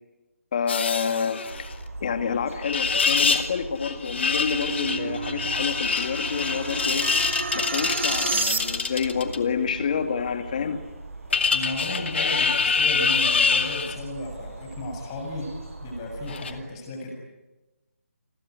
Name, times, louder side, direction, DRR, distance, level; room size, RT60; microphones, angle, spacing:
voice 1, 0.5-1.4 2.0-7.1 7.5-10.8, left 6 dB, 35° left, 8 dB, 2.3 m, -28 dB
sound 1, 0.7-1.7 2.6-3.5 3.8-9.4 11.3-14.0 16.3-16.5, left 5 dB, 50° left, 2.5 m, -25 dB
sound 2, 1.4-16.6, right 2 dB, 75° right, 7.5 m, -41 dB
sound 3, 3.9-9.1, right 4 dB, 55° right, 2.4 m, -32 dB
voice 2, 11.5-15.5 15.8-17.1, left 1 dB, 20° left, 2 dB, 6.9 m, -34 dB
29.5 x 21.0 x 9.5 m, 1.1 s
hypercardioid pair, 170°, 8 cm